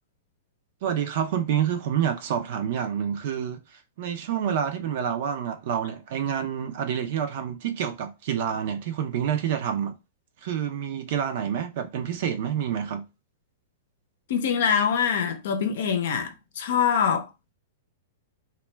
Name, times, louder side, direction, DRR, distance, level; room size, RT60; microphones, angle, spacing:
voice 1, 0.8-10.0 10.4-13.1, right 8 dB, 60° right, 0.4 m, -28 dB
voice 2, 14.3-17.3, left 7 dB, 70° left, 0.6 m, -24 dB
2.2 x 2.1 x 3.2 m
hypercardioid pair, 125°, 0 cm